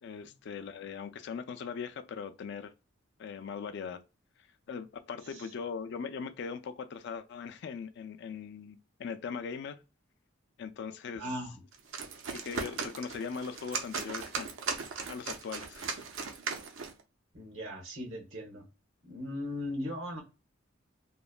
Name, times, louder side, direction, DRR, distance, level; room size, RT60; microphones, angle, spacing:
voice 1, 0.0-2.7 3.2-4.0 4.7-9.8 10.6-11.3 12.3-16.0, left 6 dB, 60° left, 0.3 m, -40 dB
voice 2, 11.2-11.5 17.3-18.6 19.0-20.2, left 1 dB, 85° right, 1.2 m, -38 dB
sound 1, 11.7-17.0, right 5 dB, 65° right, 0.5 m, -38 dB
3.0 x 2.1 x 2.4 m
head